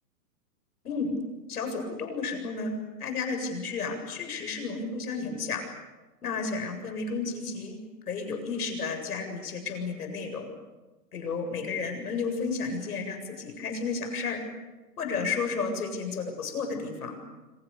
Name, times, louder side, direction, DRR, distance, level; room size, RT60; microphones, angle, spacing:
voice 1, 1.5-5.6 6.2-7.8 8.1-10.5 11.1-14.4 15.0-17.1, left 4 dB, 65° left, 4 dB, 7.7 m, -32 dB
27.5 x 25.5 x 7.0 m, 1.1 s
hypercardioid pair, 170°, 49 cm